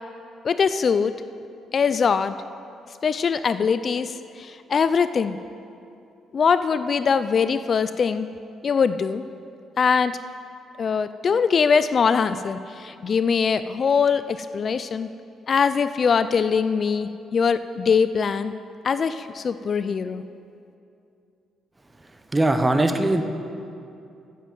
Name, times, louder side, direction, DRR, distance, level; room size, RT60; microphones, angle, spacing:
voice 1, 0.4-1.1 1.7-2.3 3.0-5.4 6.3-8.3 8.6-9.2 9.8-10.2 10.8-15.1 15.5-18.5 18.8-20.2, left 6 dB, 45° left, 12 dB, 0.3 m, -22 dB
voice 2, 22.3-23.2, right 2 dB, 15° right, 7 dB, 0.9 m, -20 dB
9.2 x 7.5 x 7.5 m, 2.6 s
cardioid pair, 90°, 0 cm